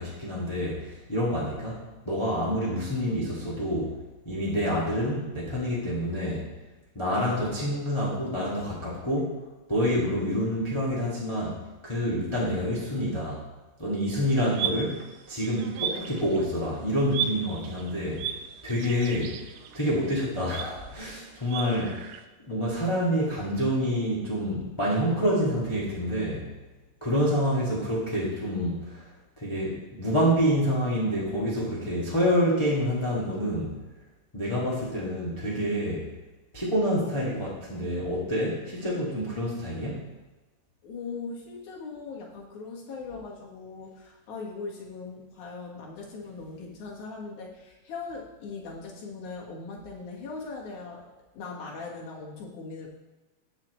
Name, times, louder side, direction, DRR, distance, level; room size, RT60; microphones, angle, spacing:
voice 1, 0.0-1.8 2.0-3.9 4.2-6.5 6.9-9.3 9.7-11.6 11.8-13.4 13.8-14.9 15.3-18.3 18.6-19.4 19.7-22.1 22.5-26.5 27.0-29.1 29.4-33.8 34.3-36.1 36.5-40.0, equal, 10° left, -7 dB, 1.7 m, -27 dB
sound 1, 14.4-16.7 17.1-22.2, right 8 dB, 80° right, 2.2 m, -36 dB
voice 2, 40.8-51.0 51.3-52.9, left 4 dB, 65° left, -2 dB, 3.1 m, -39 dB
18.5 x 6.2 x 3.2 m, 1.2 s
omnidirectional pair, 3.7 m